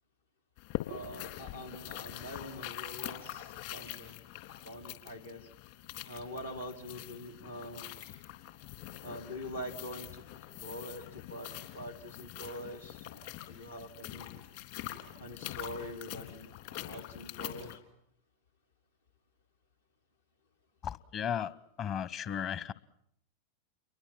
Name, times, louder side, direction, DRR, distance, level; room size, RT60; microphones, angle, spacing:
sound 1, 0.6-17.8, left 13 dB, 50° left, 3.5 m, -44 dB
voice 1, 0.8-4.1 4.6-5.5 6.1-8.0 9.0-10.2 10.6-14.3 15.2-16.5 16.8-17.8, equal, 80° left, 2 dB, 3.2 m, -44 dB
voice 2, 20.8-21.5 21.8-22.7, left 8 dB, 30° left, 18 dB, 1.1 m, -35 dB
29.5 x 23.0 x 7.5 m, 0.73 s
figure-of-eight pair, 90°, 0 cm